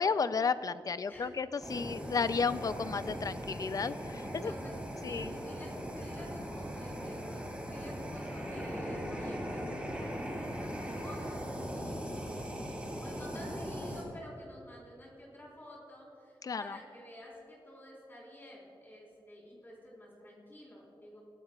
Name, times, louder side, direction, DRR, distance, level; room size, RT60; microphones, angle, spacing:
voice 1, 0.0-4.5 5.0-5.3 16.4-16.8, left 5 dB, 45° left, 14 dB, 0.4 m, -33 dB
Fire, 1.6-14.0, equal, 15° right, 3.0 m, -39 dB
voice 2, 4.3-4.8 5.0-21.2, equal, 25° left, -4 dB, 4.1 m, -50 dB
22.5 x 16.0 x 2.4 m, 2.6 s
wide cardioid pair, 155°, 9 cm